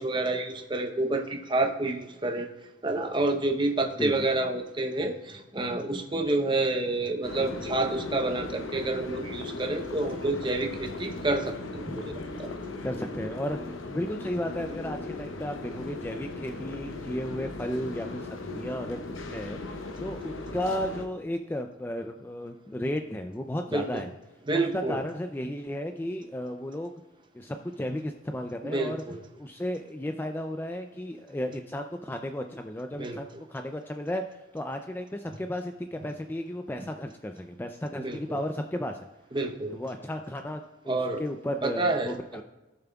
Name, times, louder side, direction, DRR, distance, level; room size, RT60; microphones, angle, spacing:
voice 1, 0.0-2.5 2.8-12.1 12.4-12.5 23.7-24.0 24.5-25.0 28.6-29.2 33.0-33.2 37.9-38.4 39.3-39.8 40.9-41.2 41.6-42.2, right 2 dB, 25° right, 5 dB, 0.7 m, -28 dB
sound 1, 7.2-21.1, left 2 dB, 70° left, 0.9 m, -38 dB
voice 2, 12.8-19.0 19.2-24.1 24.5-26.9 27.3-29.0 29.4-39.0 39.7-42.4, left 1 dB, 10° left, 5 dB, 0.3 m, -34 dB
16.5 x 7.0 x 2.3 m, 1.1 s
head